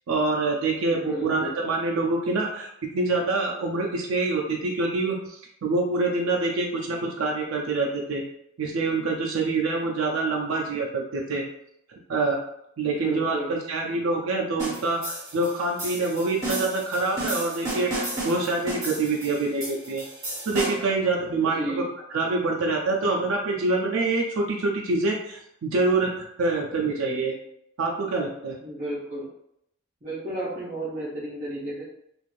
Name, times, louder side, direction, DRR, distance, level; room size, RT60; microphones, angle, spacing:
voice 1, 0.1-2.7 2.9-8.2 8.6-11.4 12.1-12.4 12.8-20.0 20.5-21.8 22.1-27.3 27.8-28.6, right 3 dB, 75° right, -1 dB, 0.4 m, -26 dB
voice 2, 0.8-1.6 12.8-13.5 21.3-21.9 28.6-29.3 30.0-31.8, right 1 dB, 35° right, -10 dB, 0.7 m, -32 dB
sound 1, 14.6-21.0, right 1 dB, 15° right, 1.4 m, -33 dB
2.5 x 2.5 x 3.1 m, 0.76 s
head